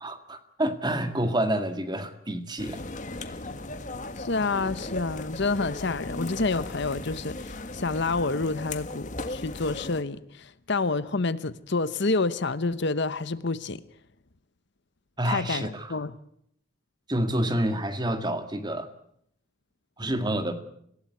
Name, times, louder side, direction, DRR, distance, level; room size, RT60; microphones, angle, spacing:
voice 1, 0.0-2.8 3.2-3.4 15.2-15.9 17.1-18.9 20.0-20.5, right 1 dB, 20° right, 1.8 m, -28 dB
sound 1, 2.6-10.0, left 2 dB, 35° left, 1.6 m, -37 dB
voice 2, 4.2-13.8 15.2-16.1, left 3 dB, 55° left, 0.9 m, -28 dB
25.5 x 17.0 x 9.4 m
head